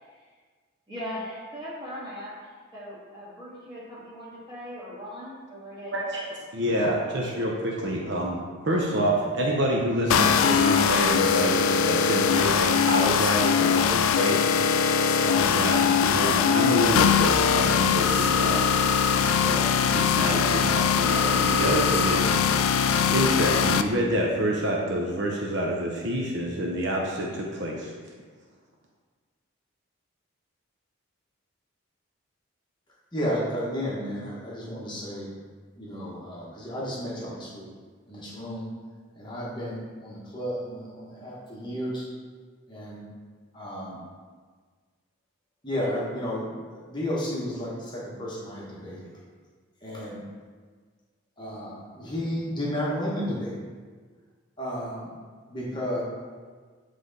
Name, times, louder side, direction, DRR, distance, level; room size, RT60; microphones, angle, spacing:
voice 1, 0.9-5.9, equal, 20° right, -8 dB, 1.8 m, -39 dB
voice 2, 5.9-6.3 6.5-8.4 8.6-18.7 19.0-22.7 23.1-27.9, right 1 dB, 55° right, -1 dB, 0.6 m, -28 dB
sound 1, 10.1-23.8, left 7 dB, 85° left, 0.3 m, -22 dB
voice 3, 33.1-35.3 35.8-37.7 38.1-38.6 39.2-42.0 42.7-43.0 43.5-44.0 45.6-49.1 49.8-50.2 51.4-53.6 54.6-55.1 55.5-56.0, equal, 20° left, -5 dB, 1.0 m, -32 dB
7.6 x 3.2 x 3.9 m, 1.5 s
head